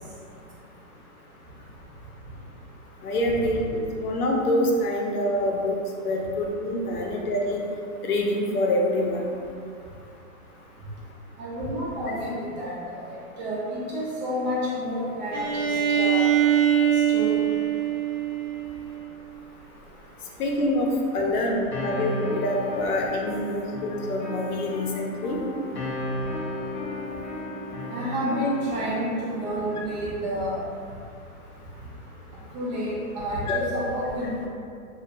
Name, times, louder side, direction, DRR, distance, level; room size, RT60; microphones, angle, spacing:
voice 1, 3.0-5.8 6.0-7.6 8.0-9.3 20.4-22.1 22.4-25.4 33.5-33.8, left 1 dB, 90° left, 0 dB, 0.6 m, -26 dB
voice 2, 11.4-13.1 13.4-16.3 17.1-17.4 27.9-30.6 32.5-34.5, equal, 30° right, -6 dB, 0.5 m, -29 dB
Bowed string instrument, 15.3-19.1, right 9 dB, 75° right, 0.8 m, -23 dB
sound 1, 21.7-29.8, left 1 dB, 35° left, 0.4 m, -34 dB
2.7 x 2.1 x 2.5 m, 2.4 s
hypercardioid pair, 135°, 43 cm